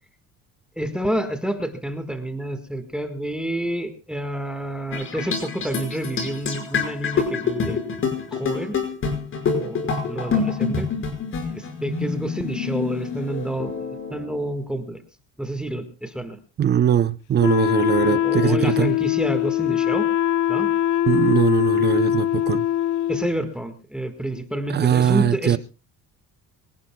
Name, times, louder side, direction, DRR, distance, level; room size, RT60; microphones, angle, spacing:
voice 1, 0.8-7.8 8.3-8.8 9.6-10.9 11.4-13.7 14.1-15.0 15.4-16.4 18.0-20.1 20.5-20.7 23.1-25.6, right 1 dB, 5° right, 1.6 m, -29 dB
sound 1, 4.9-14.4, left 5 dB, 40° left, 5.6 m, -27 dB
voice 2, 16.6-18.9 21.1-22.6 24.7-25.6, right 9 dB, 30° right, 0.6 m, -21 dB
Wind instrument woodwind instrument, 17.4-23.3, left 11 dB, 65° left, 0.9 m, -22 dB
25.0 x 18.0 x 2.3 m
cardioid pair, 120°, 32 cm